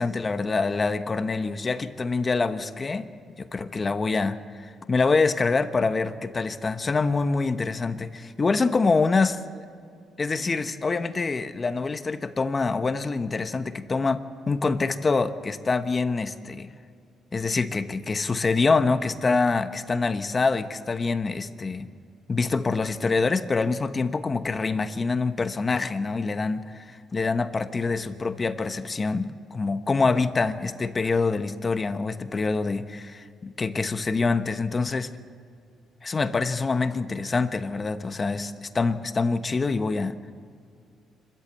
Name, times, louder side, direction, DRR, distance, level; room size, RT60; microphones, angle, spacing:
voice 1, 0.0-3.1 3.4-9.4 10.2-16.7 17.3-21.9 22.3-35.1 36.0-40.1, left 4 dB, 30° left, 10 dB, 1.1 m, -25 dB
26.0 x 13.5 x 8.2 m, 2.3 s
cardioid pair, 90°, 0 cm